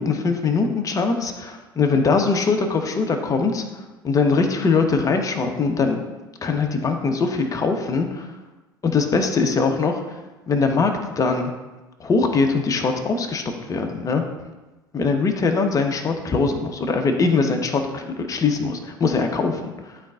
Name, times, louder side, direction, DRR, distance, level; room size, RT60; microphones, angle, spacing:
voice 1, 0.0-6.0 6.4-8.3 8.8-10.2 10.5-11.5 12.0-14.2 14.9-20.0, left 4 dB, 30° left, 4 dB, 1.1 m, -22 dB
11.5 x 4.3 x 2.5 m, 1.1 s
figure-of-eight pair, 65°, 12 cm